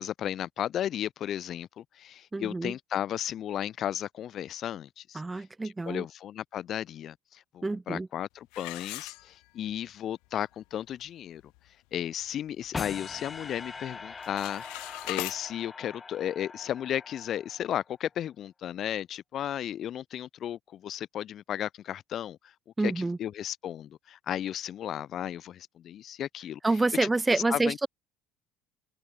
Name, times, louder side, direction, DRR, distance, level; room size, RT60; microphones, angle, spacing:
voice 1, 0.0-11.5 11.9-22.5 22.8-26.6 27.0-27.8, left 10 dB, 45° left, 2.4 m, -34 dB
voice 2, 2.3-2.7 5.1-6.1 7.6-8.1 22.8-23.2 26.6-27.9, right 2 dB, 10° right, 3.7 m, -27 dB
sound 1, 8.5-9.8 10.2-10.3 10.9-11.0 11.4-11.7 12.1-13.2 13.5-13.9 14.1-15.4, left 32 dB, 80° left, 5.4 m, -40 dB
sound 2, 12.7-17.9, left 4 dB, 20° left, 7.0 m, -42 dB
cardioid pair, 125°, 0 cm